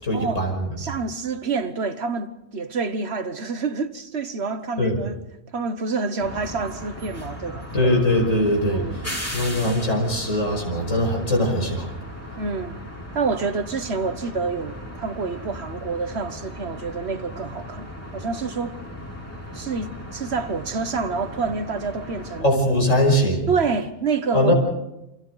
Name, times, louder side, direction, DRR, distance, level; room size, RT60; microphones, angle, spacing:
voice 1, 0.0-0.7 4.8-5.0 7.7-8.8 9.3-11.9 22.4-23.5 24.3-24.5, left 1 dB, 75° left, 5.9 m, -21 dB
voice 2, 0.8-5.2 5.5-7.7 8.7-9.0 12.4-12.8 13.1-18.8 19.5-22.5 23.5-24.5, right 4 dB, 55° right, 1.3 m, -27 dB
sound 1, 6.2-22.4, left 1 dB, 10° left, 3.0 m, -37 dB
29.0 x 25.5 x 4.0 m
omnidirectional pair, 1.3 m